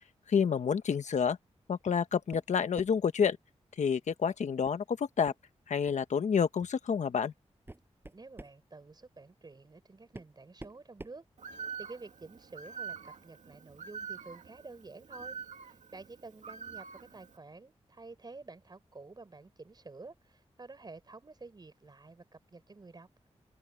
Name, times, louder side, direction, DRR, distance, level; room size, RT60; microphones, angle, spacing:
voice 1, 0.3-1.4 1.7-3.4 3.8-5.3 5.7-7.3, left 6 dB, 85° left, 1.3 m, -29 dB
sound 1, 1.9-2.0 2.3-3.1 4.7-4.8 5.3-5.4 5.9-6.1 6.9-7.0 7.5-8.6 9.6-9.7 10.1-11.9, right 2 dB, 20° right, 7.9 m, -49 dB
voice 2, 8.1-23.1, right 3 dB, 35° right, 6.0 m, -50 dB
Bird, 11.4-17.4, right 6 dB, 90° right, 2.4 m, -45 dB
wide cardioid pair, 115°, 12 cm